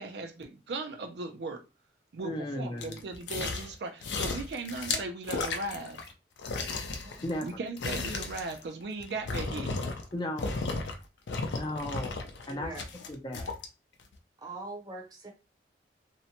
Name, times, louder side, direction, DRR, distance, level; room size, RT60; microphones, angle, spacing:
voice 1, 0.0-1.6 2.1-6.0 7.4-9.7, right 3 dB, 70° right, 0.4 m, -37 dB
voice 2, 2.2-3.0 7.2-7.5 10.1-10.5 11.5-12.1 12.5-12.7 13.1-13.5, left 1 dB, 25° left, 0.4 m, -35 dB
sound 1, 2.8-6.1 6.4-10.1 10.4-11.0 11.3-13.7 14.1-14.2, left 3 dB, 80° left, 0.5 m, -34 dB
voice 3, 7.0-7.6 11.6-11.8 12.5-12.8 14.4-15.3, right 2 dB, 20° right, 0.6 m, -44 dB
2.6 x 2.1 x 2.8 m
head